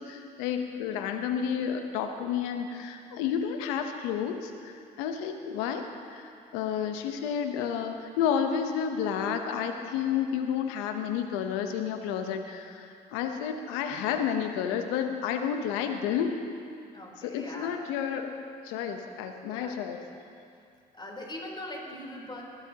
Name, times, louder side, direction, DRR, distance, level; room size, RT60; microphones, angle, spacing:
voice 1, 0.0-16.4 17.2-18.3 18.6-20.0, left 8 dB, 80° left, 6 dB, 1.0 m, -31 dB
voice 2, 16.9-17.8 19.4-19.8 20.9-22.4, left 1 dB, 20° left, -2 dB, 3.8 m, -41 dB
21.0 x 11.5 x 3.0 m, 2.4 s
hypercardioid pair, 55°, 21 cm